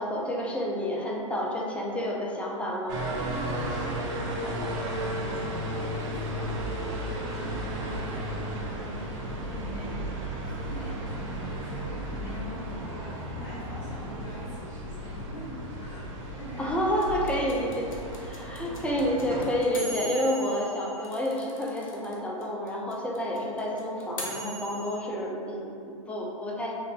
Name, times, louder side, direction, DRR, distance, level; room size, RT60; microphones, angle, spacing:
voice 1, 0.0-3.1 16.6-17.9 18.2-26.7, equal, 5° left, -2 dB, 0.5 m, -29 dB
sound 1, 2.9-19.4, right 1 dB, 45° right, 0.8 m, -34 dB
voice 2, 3.1-17.2 18.0-18.8, equal, 40° left, -12 dB, 1.4 m, -43 dB
sound 2, 17.0-22.1 22.4-22.5 22.7-25.0, equal, 80° left, 0.7 m, -39 dB
5.6 x 2.5 x 2.2 m, 2.5 s
hypercardioid pair, 115°, 17 cm